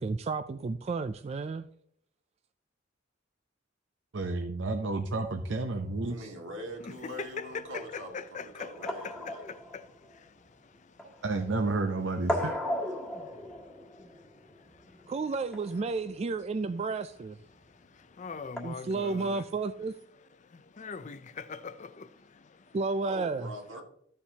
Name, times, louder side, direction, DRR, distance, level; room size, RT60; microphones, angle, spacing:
voice 1, 0.0-1.7 15.1-17.4 18.6-19.9 22.7-23.5, right 3 dB, 35° right, 0.3 m, -32 dB
voice 2, 4.1-6.3 11.2-12.5, right 3 dB, 65° right, 0.7 m, -31 dB
sound 1, 5.1-18.6, left 1 dB, 5° left, 1.5 m, -39 dB
voice 3, 6.0-9.4 23.0-23.8, equal, 85° right, 2.1 m, -43 dB
voice 4, 6.8-11.2 13.0-15.1 17.5-19.5 20.4-22.8, left 5 dB, 40° left, 0.5 m, -43 dB
13.5 x 7.1 x 2.8 m
head